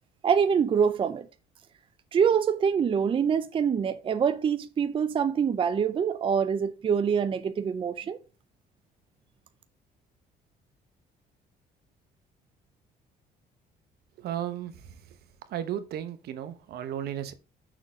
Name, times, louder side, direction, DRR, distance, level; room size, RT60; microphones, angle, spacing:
voice 1, 0.2-1.3 2.1-8.2, right 7 dB, 30° right, 0.5 m, -25 dB
voice 2, 14.2-14.8 15.5-17.3, right 10 dB, 70° right, 0.9 m, -34 dB
6.3 x 4.0 x 4.9 m
cardioid pair, 110°, 17 cm